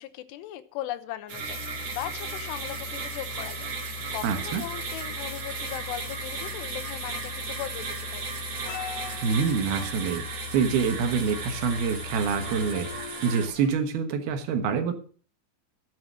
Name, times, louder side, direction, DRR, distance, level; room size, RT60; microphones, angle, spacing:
voice 1, 0.0-8.3, left 13 dB, 85° left, 13 dB, 3.1 m, -38 dB
Musical instrument, 1.3-13.2, left 10 dB, 40° left, 3.7 m, -42 dB
sound 1, 1.3-13.5, right 5 dB, 45° right, 2.8 m, -36 dB
voice 2, 4.2-4.6 9.2-14.9, right 6 dB, 70° right, 7 dB, 3.1 m, -26 dB
sound 2, 8.5-13.7, left 7 dB, 70° left, 2.9 m, -43 dB
13.0 x 7.9 x 6.1 m, 0.40 s
omnidirectional pair, 4.8 m